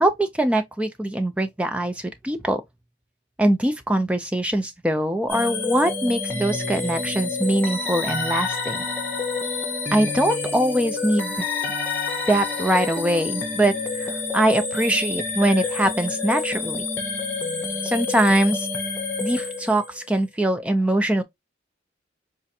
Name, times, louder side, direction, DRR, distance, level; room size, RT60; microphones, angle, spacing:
voice 1, 0.0-2.6 3.4-8.8 9.9-11.5 12.3-16.9 17.8-18.7 19.2-21.2, right 1 dB, 5° right, 0.3 m, -22 dB
sound 1, 5.3-20.0, left 4 dB, 10° left, 0.9 m, -28 dB
4.3 x 2.5 x 2.7 m
head